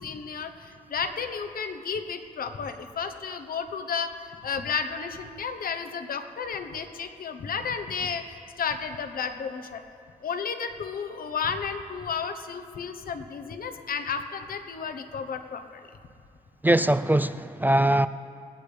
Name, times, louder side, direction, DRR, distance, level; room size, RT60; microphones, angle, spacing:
voice 1, 0.0-4.1 4.4-9.8 10.2-15.8, left 6 dB, 70° left, 1.0 m, -32 dB
voice 2, 16.6-18.1, right 1 dB, 10° right, 0.3 m, -21 dB
20.5 x 15.5 x 3.3 m
cardioid pair, 70°, 15 cm